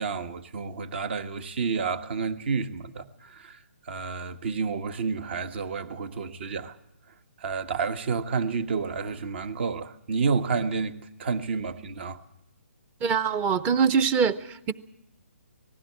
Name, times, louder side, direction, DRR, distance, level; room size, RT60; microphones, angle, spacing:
voice 1, 0.0-3.6 3.9-6.7 7.4-12.2, right 5 dB, 50° right, 1.5 m, -30 dB
voice 2, 13.0-14.7, right 6 dB, 20° right, 0.7 m, -23 dB
19.0 x 15.5 x 8.8 m
hypercardioid pair, 150°, 7 cm